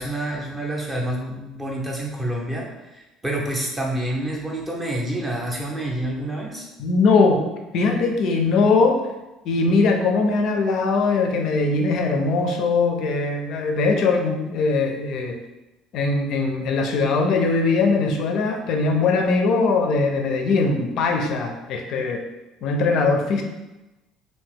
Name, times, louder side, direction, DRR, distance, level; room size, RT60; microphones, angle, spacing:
voice 1, 0.0-6.7, right 1 dB, 10° right, -2 dB, 0.6 m, -28 dB
voice 2, 6.8-7.4 7.7-9.0 9.4-15.4 15.9-22.2 22.6-23.4, left 3 dB, 50° left, 3 dB, 0.4 m, -21 dB
2.8 x 2.7 x 3.5 m, 1.0 s
cardioid pair, 175°, 0 cm